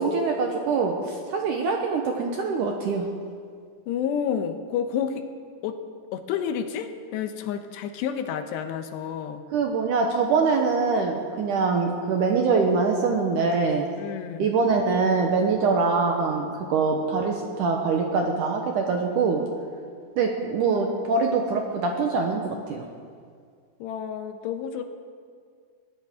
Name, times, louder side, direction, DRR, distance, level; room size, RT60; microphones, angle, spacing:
voice 1, 0.0-3.1 9.5-13.9 14.4-19.5 20.2-22.8, right 4 dB, 75° right, 2 dB, 1.9 m, -24 dB
voice 2, 3.9-5.2 5.6-5.8 6.1-9.4 14.0-14.5 23.8-24.9, left 8 dB, 85° left, 7 dB, 3.1 m, -30 dB
22.0 x 16.0 x 3.7 m, 2.1 s
omnidirectional pair, 4.8 m